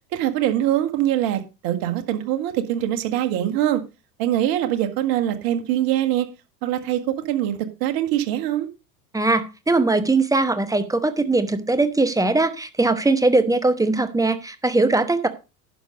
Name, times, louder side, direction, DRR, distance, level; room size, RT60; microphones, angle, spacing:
voice 1, 0.1-3.8 4.2-6.3 6.6-8.7, right 12 dB, 45° right, 1.8 m, -23 dB
voice 2, 9.1-15.3, right 2 dB, 5° right, 1.0 m, -20 dB
11.0 x 6.5 x 5.1 m
figure-of-eight pair, 85°, 50 cm